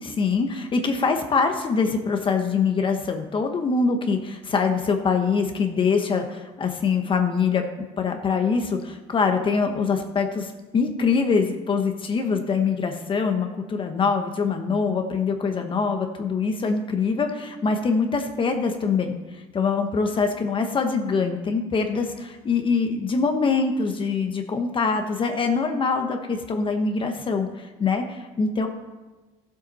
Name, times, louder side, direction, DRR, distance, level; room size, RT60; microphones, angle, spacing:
voice 1, 0.0-7.6 8.0-19.2 19.5-28.7, left 5 dB, 35° left, 5 dB, 1.1 m, -24 dB
14.0 x 7.7 x 4.2 m, 1.2 s
cardioid pair, 105°, 15 cm